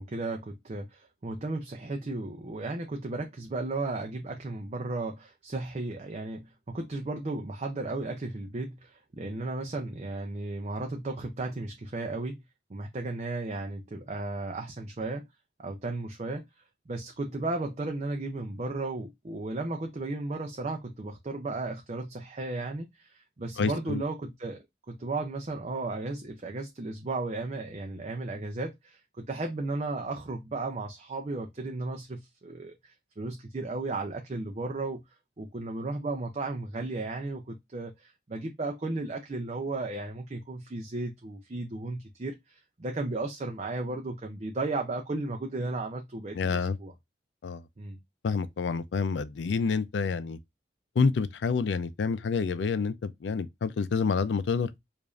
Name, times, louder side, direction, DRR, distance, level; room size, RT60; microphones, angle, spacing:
voice 1, 0.0-12.4 12.7-15.2 15.6-16.5 16.9-35.0 35.4-46.9 47.8-48.0, right 2 dB, 40° right, 0.5 m, -35 dB
voice 2, 23.6-24.0 46.3-46.8 47.4-47.6 48.2-50.4 51.0-54.7, left 5 dB, 90° left, 0.4 m, -28 dB
4.9 x 2.5 x 2.4 m
head